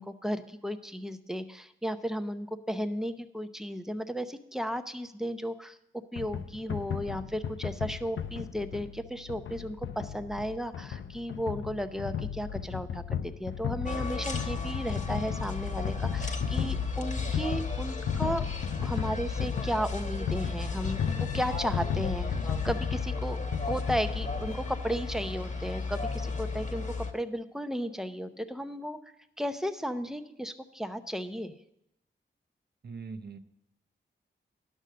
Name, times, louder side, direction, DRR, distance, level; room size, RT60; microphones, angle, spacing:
voice 1, 0.0-5.8 6.1-18.4 18.8-23.4 23.6-29.0 29.4-31.5, equal, ahead, 9 dB, 0.7 m, -34 dB
sound 1, 6.2-24.5, left 8 dB, 75° left, 0.6 m, -35 dB
sound 2, 13.8-27.1, left 3 dB, 35° left, 1.2 m, -35 dB
voice 2, 32.8-33.4, right 4 dB, 55° right, 9 dB, 0.8 m, -41 dB
11.5 x 6.4 x 6.7 m, 0.81 s
wide cardioid pair, 115°, 20 cm